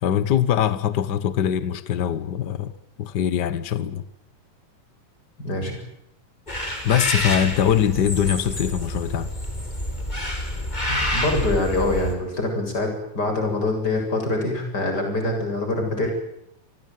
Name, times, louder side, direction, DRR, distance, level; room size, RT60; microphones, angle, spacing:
voice 1, 0.0-2.7 3.0-4.0 6.8-9.3, left 9 dB, 65° left, 1.0 m, -22 dB
voice 2, 5.4-5.8 10.9-16.1, left 2 dB, 30° left, 7.9 m, -25 dB
sound 1, 6.5-12.1, left 1 dB, 15° left, 4.7 m, -28 dB
27.5 x 20.0 x 9.4 m
omnidirectional pair, 3.5 m